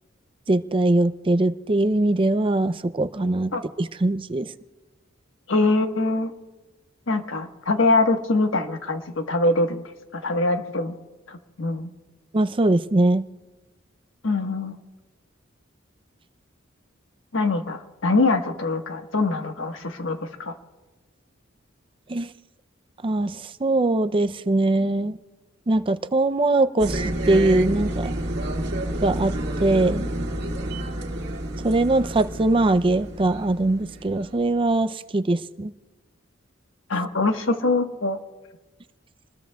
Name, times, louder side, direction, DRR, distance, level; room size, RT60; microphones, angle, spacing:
voice 1, 0.5-3.5 3.8-4.5 12.3-13.2 22.1-22.3 23.0-25.2 25.7-28.1 29.0-29.3 29.6-30.0 31.6-35.7, right 2 dB, 25° right, 11 dB, 0.5 m, -21 dB
voice 2, 5.5-6.3 7.1-9.8 10.1-10.9 11.3-11.9 14.2-14.8 17.3-20.5 36.9-38.2, left 2 dB, 75° left, 5 dB, 1.4 m, -23 dB
sound 1, 26.8-34.6, right 1 dB, 60° right, 2.2 m, -29 dB
28.5 x 20.5 x 2.3 m, 1.2 s
head